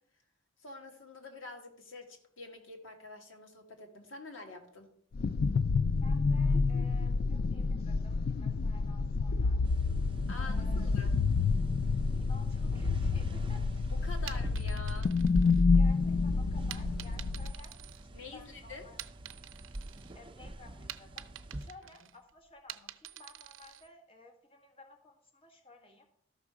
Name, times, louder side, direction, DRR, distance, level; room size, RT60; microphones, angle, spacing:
voice 1, 0.6-4.9 10.3-11.1 13.9-15.1 18.1-18.9 22.0-22.1, left 3 dB, 80° left, 3 dB, 1.7 m, -47 dB
sound 1, 5.1-17.5, left 4 dB, 50° left, 0.3 m, -29 dB
voice 2, 6.0-9.6 10.4-11.0 12.2-13.6 14.2-14.4 15.7-17.8 18.0-19.0 20.1-21.3 21.6-26.1, left 2 dB, 30° left, 2 dB, 1.6 m, -55 dB
sound 2, 9.6-21.7, right 1 dB, 25° right, 0.5 m, -46 dB
sound 3, 14.1-16.1 16.7-18.5 18.8-20.1 20.5-23.9, right 12 dB, 80° right, 0.6 m, -48 dB
13.0 x 6.0 x 4.8 m, 0.64 s
head